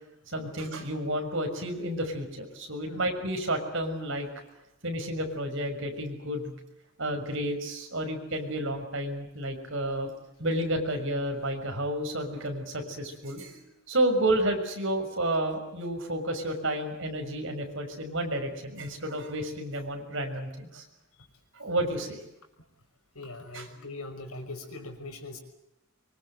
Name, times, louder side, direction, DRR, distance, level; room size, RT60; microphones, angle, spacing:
voice 1, 0.3-4.3 4.8-6.5 7.0-10.1 10.4-20.8 21.5-22.2 23.5-23.7, right 1 dB, 60° right, 4 dB, 6.3 m, -31 dB
voice 2, 23.2-25.4, left 2 dB, 80° left, 6 dB, 5.7 m, -41 dB
24.5 x 24.5 x 7.9 m, 0.84 s
head